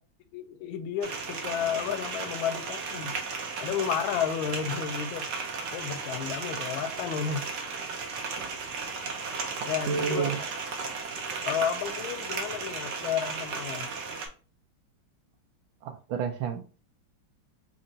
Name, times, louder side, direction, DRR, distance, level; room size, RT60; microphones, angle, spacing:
voice 1, 0.3-3.2 3.6-5.3 5.7-7.5 9.6-10.3 11.4-13.9, left 8 dB, 90° left, 1.4 m, -32 dB
sound 1, 1.0-14.3, right 4 dB, 65° right, 1.3 m, -35 dB
voice 2, 9.9-10.4 15.8-16.6, right 6 dB, 80° right, 1.5 m, -29 dB
4.3 x 3.0 x 2.6 m
omnidirectional pair, 2.1 m